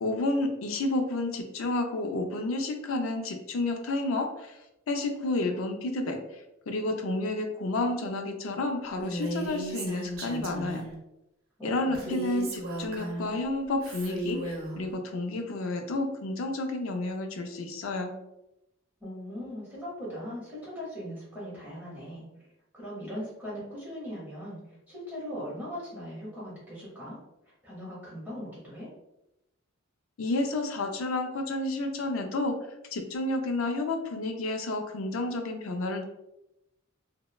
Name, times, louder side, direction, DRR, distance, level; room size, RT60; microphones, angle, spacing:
voice 1, 0.0-4.6 4.9-10.9 11.6-18.1 30.2-32.6 32.9-36.0, left 2 dB, 75° left, 5 dB, 0.4 m, -30 dB
Female speech woman speaking, 9.0-10.9 11.9-13.3 13.8-14.8, right 1 dB, 90° right, 0.7 m, -35 dB
voice 2, 11.6-12.2 19.0-22.2 22.7-24.6 24.9-27.2 27.6-28.9, equal, 10° right, -8 dB, 0.8 m, -39 dB
3.0 x 2.0 x 2.2 m, 0.88 s
head